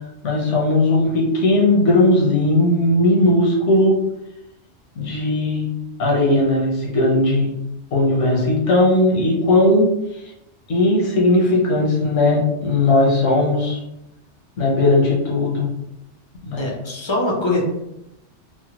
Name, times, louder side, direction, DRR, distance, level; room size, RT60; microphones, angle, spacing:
voice 1, 0.2-4.0 5.0-5.7 6.0-7.5 7.9-9.9 10.7-13.8 14.6-15.7 16.4-16.7, left 2 dB, 80° left, -2 dB, 1.2 m, -17 dB
voice 2, 16.6-17.6, left 2 dB, 40° left, -1 dB, 0.4 m, -22 dB
3.3 x 2.1 x 2.9 m, 0.88 s
omnidirectional pair, 1.2 m